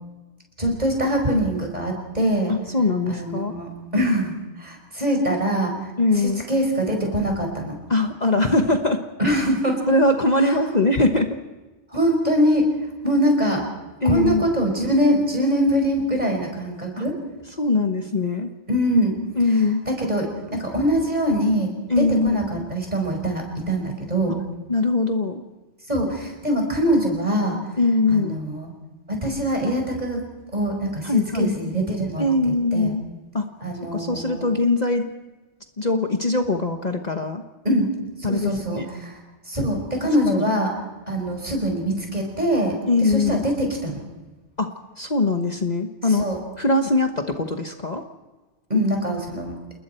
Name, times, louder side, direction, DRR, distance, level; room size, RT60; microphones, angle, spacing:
voice 1, 0.6-2.5 3.1-5.9 6.2-7.8 9.2-9.8 10.4-10.6 11.9-12.7 13.0-13.6 14.0-17.2 18.7-19.2 19.9-24.4 25.9-27.6 28.1-28.7 29.1-32.9 33.6-34.4 37.6-37.9 38.2-39.2 39.5-40.7 41.1-44.0 46.2-46.4 48.7-49.6, equal, 35° right, 2 dB, 5.5 m, -23 dB
voice 2, 2.5-3.5 6.0-6.4 7.9-9.0 9.9-11.4 14.0-14.5 17.0-17.1 17.6-18.5 19.4-19.8 21.9-22.3 24.3-24.4 24.7-25.4 27.8-28.4 31.0-31.6 32.2-33.0 33.3-33.5 33.9-35.1 35.8-37.4 38.2-38.9 40.3-40.5 42.9-43.4 44.6-44.7 45.0-46.3 46.6-48.1, left 2 dB, 40° left, 4 dB, 1.3 m, -21 dB
28.5 x 21.0 x 4.5 m, 1.2 s
omnidirectional pair, 1.2 m